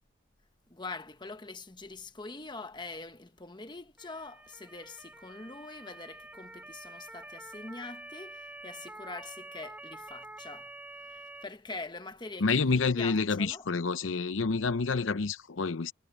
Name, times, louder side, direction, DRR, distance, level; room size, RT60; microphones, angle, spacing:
voice 1, 0.7-10.7 11.0-13.7, left 3 dB, 20° left, 1.1 m, -44 dB
Motor vehicle (road) / Siren, 4.0-11.4, right 2 dB, 10° right, 1.6 m, -47 dB
voice 2, 12.4-15.9, left 4 dB, 80° left, 0.7 m, -28 dB
head